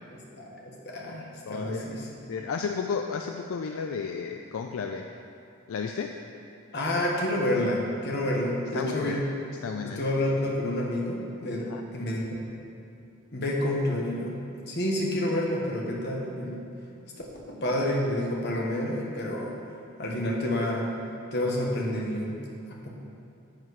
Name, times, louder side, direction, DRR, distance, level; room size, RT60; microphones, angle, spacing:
voice 1, 0.3-2.1 6.7-9.2 9.8-12.5 13.3-14.4 14.7-16.7 17.5-19.5 20.0-20.9 21.3-22.4 22.8-23.0, left 1 dB, 55° left, -2 dB, 1.3 m, -29 dB
voice 2, 1.5-5.1 5.7-6.2 8.7-9.2 9.6-10.0 11.6-11.8, left 5 dB, 75° left, 4 dB, 0.4 m, -33 dB
10.5 x 7.4 x 3.2 m, 2.6 s
head